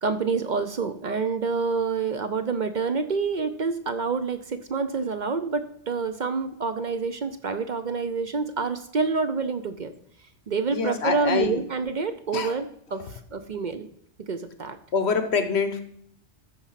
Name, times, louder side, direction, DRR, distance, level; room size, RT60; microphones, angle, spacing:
voice 1, 0.0-9.9 10.5-13.9 14.3-14.8, right 4 dB, 50° right, 9 dB, 0.7 m, -27 dB
voice 2, 10.7-11.6 12.3-12.5 13.0-13.1 14.9-15.8, left 5 dB, 70° left, 9 dB, 1.3 m, -25 dB
13.5 x 4.7 x 5.7 m, 0.68 s
omnidirectional pair, 1.1 m